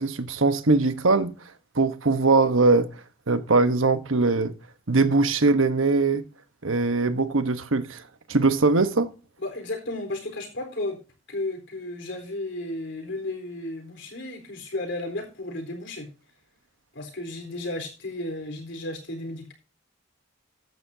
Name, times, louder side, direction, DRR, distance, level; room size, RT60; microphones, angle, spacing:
voice 1, 0.0-1.3 1.7-2.9 3.3-4.5 4.9-6.2 6.6-8.0 8.3-9.1, right 3 dB, 85° right, 1.2 m, -21 dB
voice 2, 9.4-11.0 11.3-16.1 16.9-19.5, left 2 dB, 65° left, 4.1 m, -33 dB
15.0 x 11.0 x 2.8 m
head